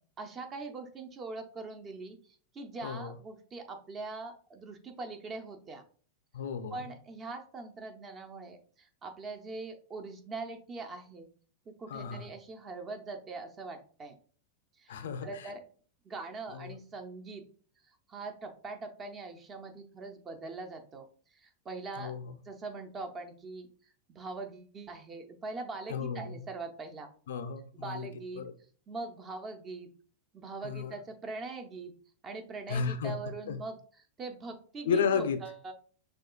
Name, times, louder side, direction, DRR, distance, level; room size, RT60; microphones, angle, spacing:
voice 1, 0.2-5.8 6.7-11.3 11.7-14.2 14.8-15.6 16.0-17.4 17.8-22.1 22.4-23.7 24.1-27.1 27.7-28.4 28.9-29.9 30.3-31.9 32.2-35.7, right 3 dB, 30° right, 5 dB, 0.8 m, -42 dB
voice 2, 2.8-3.1 6.3-6.9 11.9-12.3 14.9-15.5 16.5-16.7 22.0-22.3 25.9-26.4 27.3-28.1 28.4-28.5 30.6-30.9 32.7-33.2 33.5-33.6 34.8-35.4, left 6 dB, 70° left, 10 dB, 0.4 m, -33 dB
6.2 x 2.5 x 2.3 m, 0.44 s
hypercardioid pair, 95°, 0 cm